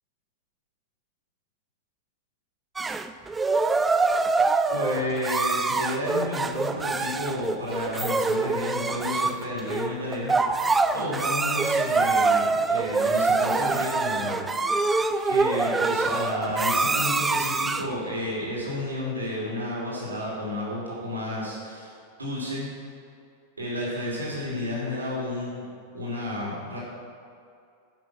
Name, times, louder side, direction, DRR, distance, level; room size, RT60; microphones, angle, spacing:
sound 1, 2.8-18.0, right 3 dB, 15° right, 0.4 m, -25 dB
voice 1, 4.7-10.6 10.9-14.4 15.3-21.9 22.2-22.7 23.6-26.8, left 1 dB, 75° right, -5 dB, 2.8 m, -31 dB
10.5 x 6.1 x 5.9 m, 2.4 s
figure-of-eight pair, 90°, 0 cm